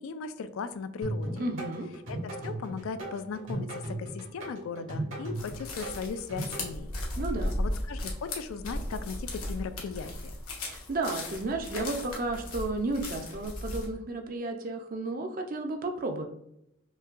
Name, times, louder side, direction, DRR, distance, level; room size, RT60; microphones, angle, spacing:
voice 1, 0.0-1.5 2.1-6.9 7.6-10.3, left 5 dB, 70° left, 11 dB, 0.3 m, -37 dB
sound 1, 1.0-6.6, right 1 dB, 70° right, 1.4 m, -36 dB
voice 2, 1.4-1.9 7.2-7.6 10.6-16.3, right 2 dB, 40° right, 4 dB, 0.5 m, -33 dB
sound 2, 5.3-13.9, left 1 dB, 90° left, 1.0 m, -36 dB
5.4 x 2.2 x 2.4 m, 0.77 s
head